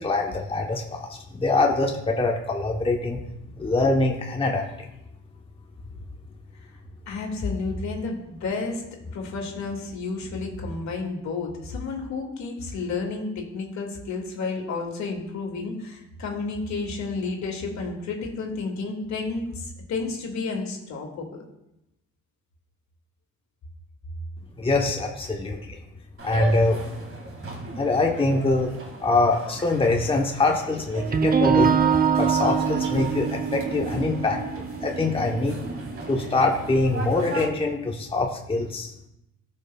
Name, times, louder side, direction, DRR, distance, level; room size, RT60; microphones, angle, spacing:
voice 1, 0.0-3.2 3.6-4.6 24.6-25.8 26.2-26.8 27.7-28.7 29.0-31.7 32.2-34.4 34.8-35.6 36.1-38.9, left 2 dB, 20° left, 1 dB, 0.8 m, -24 dB
voice 2, 7.1-8.8 9.1-21.4, left 3 dB, 65° left, 1 dB, 2.0 m, -31 dB
sound 1, 26.2-37.5, right 2 dB, 45° right, 1.8 m, -37 dB
sound 2, 31.0-36.9, right 6 dB, 30° right, 0.6 m, -24 dB
14.0 x 5.4 x 2.2 m, 0.88 s
cardioid pair, 90°, 30 cm